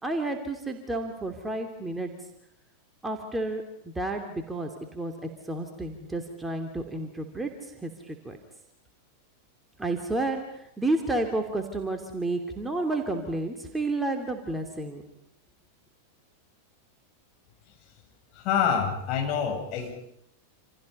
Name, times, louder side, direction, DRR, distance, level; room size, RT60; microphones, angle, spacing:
voice 1, 0.0-2.1 3.0-8.4 9.8-15.0, right 2 dB, 10° right, 4 dB, 2.9 m, -31 dB
voice 2, 18.3-19.9, left 7 dB, 40° left, 2 dB, 7.7 m, -26 dB
28.5 x 28.0 x 5.5 m, 0.71 s
figure-of-eight pair, 90°, 0 cm